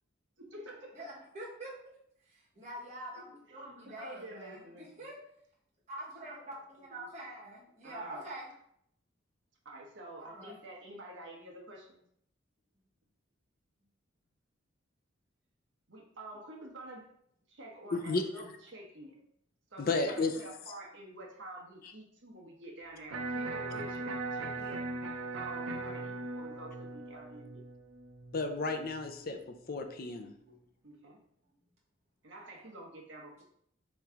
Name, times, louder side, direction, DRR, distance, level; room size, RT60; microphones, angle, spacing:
voice 1, 0.4-1.0 3.5-5.0 7.8-8.3 9.6-12.1 15.9-17.1 17.5-19.2 19.7-24.9 25.3-27.6 30.8-31.2 32.2-33.4, right 1 dB, 65° right, -1 dB, 1.1 m, -48 dB
voice 2, 0.9-1.7 2.3-5.1 5.9-8.5 10.2-10.5 30.2-30.6, right 1 dB, 35° right, -6 dB, 1.5 m, -45 dB
voice 3, 17.9-18.2 19.8-20.3 28.3-29.4 29.7-30.3, left 3 dB, 45° left, 6 dB, 0.5 m, -32 dB
Electric guitar, 23.1-29.2, right 3 dB, 90° right, 0.6 m, -39 dB
3.6 x 3.1 x 4.5 m, 0.70 s
head